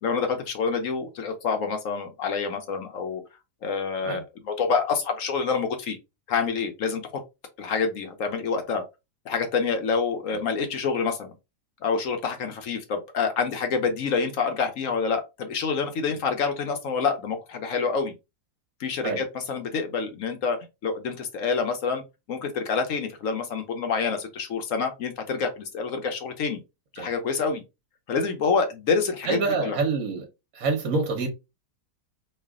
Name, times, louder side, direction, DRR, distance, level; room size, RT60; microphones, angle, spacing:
voice 1, 0.0-3.2 3.6-6.0 6.3-7.0 7.6-8.8 9.3-11.3 11.8-18.1 18.8-22.0 22.3-26.6 26.9-27.6 28.1-29.8, left 5 dB, 60° left, 1.0 m, -27 dB
voice 2, 29.2-30.3 30.5-31.3, right 4 dB, 60° right, 1.3 m, -26 dB
3.2 x 2.4 x 3.5 m
omnidirectional pair, 1.7 m